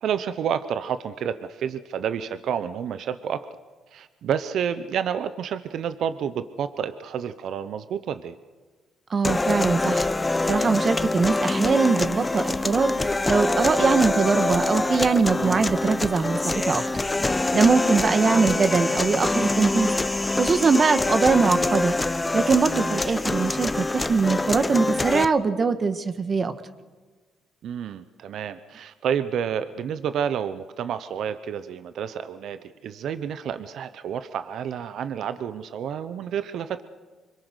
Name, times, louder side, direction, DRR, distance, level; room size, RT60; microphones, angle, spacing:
voice 1, 0.0-3.5 3.9-8.4 15.4-15.7 27.6-36.8, right 8 dB, 70° right, 12 dB, 0.9 m, -29 dB
voice 2, 9.1-10.1 10.5-12.9 13.3-16.8 17.5-19.9 20.4-22.0 22.3-26.5, right 4 dB, 40° right, 10 dB, 1.8 m, -22 dB
sound 1, 9.2-25.2, left 2 dB, 20° left, 0.9 m, -25 dB
26.0 x 23.5 x 6.4 m, 1.3 s
cardioid pair, 90°, 0 cm